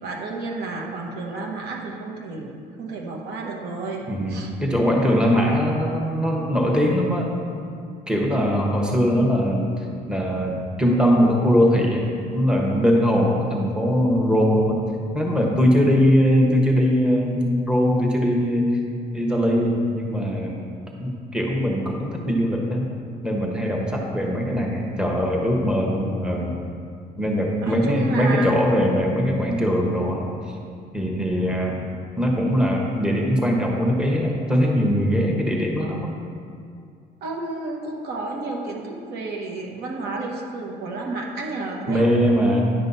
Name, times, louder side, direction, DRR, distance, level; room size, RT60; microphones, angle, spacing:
voice 1, 0.0-4.5 24.2-24.6 27.6-28.6 37.2-42.6, right 3 dB, 75° right, 0 dB, 1.3 m, -31 dB
voice 2, 4.1-7.3 8.1-12.1 12.3-14.8 15.1-18.8 19.1-20.5 21.0-22.9 23.2-26.6 27.2-30.3 30.9-31.8 32.2-36.1 41.9-42.6, equal, 5° right, -1 dB, 1.2 m, -21 dB
10.5 x 5.3 x 4.2 m, 2.3 s
cardioid pair, 110°, 17 cm